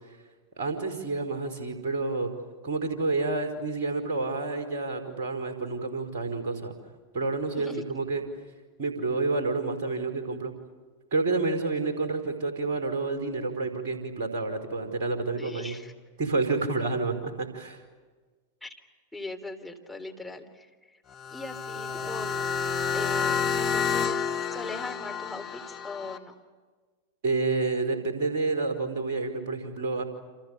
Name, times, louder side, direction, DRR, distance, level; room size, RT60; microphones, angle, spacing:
voice 1, 0.6-2.3 2.6-6.7 7.1-8.2 8.8-10.5 11.1-15.8 16.2-17.8 27.2-30.0, right 3 dB, 50° right, 8 dB, 5.2 m, -29 dB
voice 2, 15.4-15.9 18.6-18.7 19.1-21.0 21.3-22.4 22.9-26.3, left 2 dB, 5° left, 1 dB, 3.5 m, -40 dB
sound 1, 21.1-26.2, left 6 dB, 30° left, 2.3 m, -29 dB
29.5 x 28.0 x 6.9 m, 1.4 s
figure-of-eight pair, 90°, 0 cm